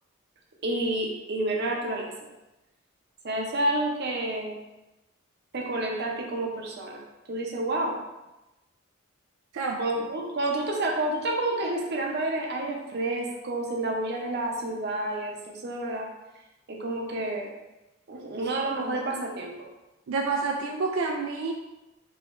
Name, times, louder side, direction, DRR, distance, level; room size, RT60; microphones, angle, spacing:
voice 1, 0.6-2.1 3.2-4.5 5.5-7.0 7.3-8.0 9.8-16.1 16.7-17.5 18.1-19.5, right 1 dB, 55° right, 0 dB, 0.7 m, -29 dB
voice 2, 20.1-21.5, right 4 dB, 85° right, 1 dB, 0.4 m, -28 dB
4.8 x 2.9 x 2.5 m, 0.99 s
head